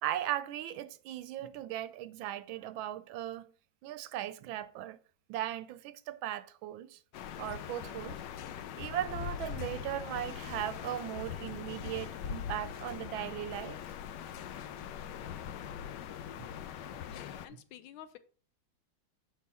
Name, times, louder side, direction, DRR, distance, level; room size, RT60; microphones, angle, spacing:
voice 1, 0.0-3.5 3.8-5.0 5.3-7.0 7.4-8.2 8.8-13.8, right 12 dB, 85° right, 1.4 m, -38 dB
sound 1, 7.1-17.5, left 8 dB, 70° left, 1.1 m, -41 dB
voice 2, 16.9-18.2, left 11 dB, 90° left, 1.5 m, -51 dB
7.5 x 5.7 x 4.1 m
omnidirectional pair, 2.2 m